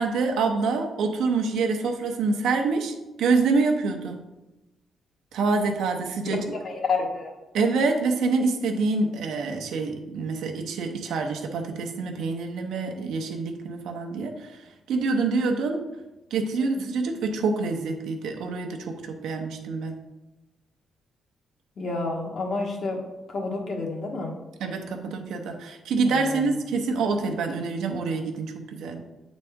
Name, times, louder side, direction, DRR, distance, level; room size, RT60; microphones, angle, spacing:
voice 1, 0.0-4.2 5.3-6.4 7.5-15.8 16.3-20.0 24.6-29.0, right 4 dB, 90° right, 3 dB, 0.8 m, -26 dB
voice 2, 6.6-7.3 21.8-23.0 23.3-24.3 26.0-26.5, left 3 dB, 50° left, 0 dB, 1.4 m, -29 dB
7.9 x 4.0 x 3.6 m, 1.0 s
cardioid pair, 120°, 0 cm